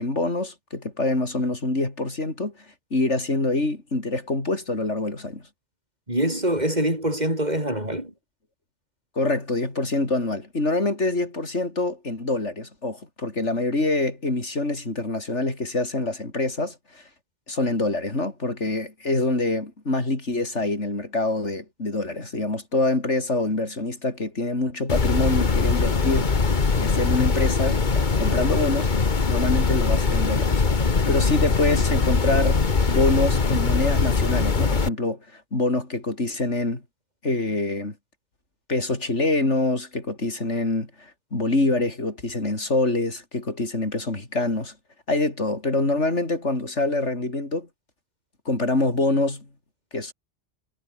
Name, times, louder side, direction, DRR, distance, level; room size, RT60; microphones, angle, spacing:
voice 1, 0.0-2.5 2.9-5.4 9.1-17.0 17.5-28.9 29.3-32.6 32.9-36.8 37.2-37.9 38.7-44.7 45.1-47.7 48.4-49.4 49.9-50.1, left 2 dB, 65° left, 5.1 m, -25 dB
voice 2, 6.1-8.1, right 1 dB, 35° right, 8.1 m, -24 dB
sound 1, 24.9-34.9, left 4 dB, 40° left, 1.5 m, -22 dB
omnidirectional pair, 1.3 m